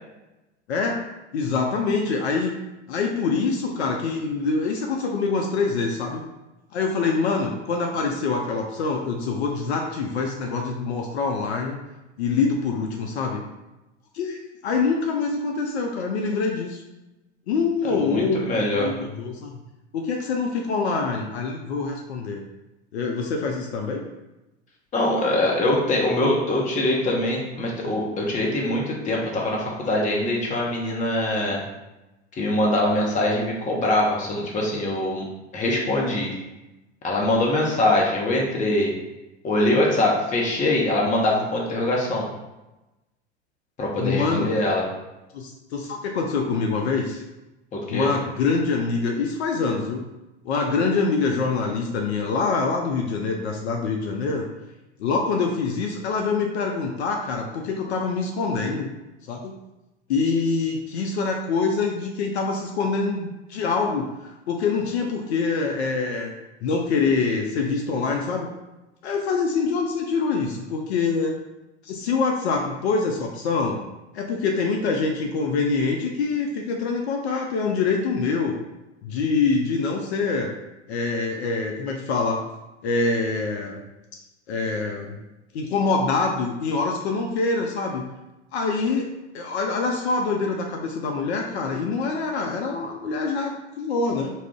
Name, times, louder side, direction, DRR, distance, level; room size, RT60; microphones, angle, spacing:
voice 1, 0.7-1.0 1.3-2.5 2.9-6.2 6.7-11.8 12.2-13.4 14.1-14.4 14.6-16.8 17.5-19.6 19.9-22.4 22.9-24.0 44.0-44.5 45.3-47.2 47.9-50.1 50.4-54.5 55.0-58.9 59.3-59.6 60.1-64.1 64.5-66.3 66.6-68.5 69.0-71.3 71.8-73.8 74.1-78.6 79.0-80.5 80.9-82.4 82.8-83.8 84.5-85.2 85.5-88.1 88.5-89.1 89.3-94.3, left 4 dB, 65° left, 1 dB, 0.5 m, -25 dB
voice 2, 17.9-18.9 24.9-31.6 32.4-35.2 35.5-36.3 37.0-38.9 39.4-42.3 43.8-44.8 47.7-48.1, left 1 dB, 20° left, -2 dB, 0.6 m, -23 dB
2.3 x 2.0 x 3.6 m, 1.0 s
figure-of-eight pair, 85°, 36 cm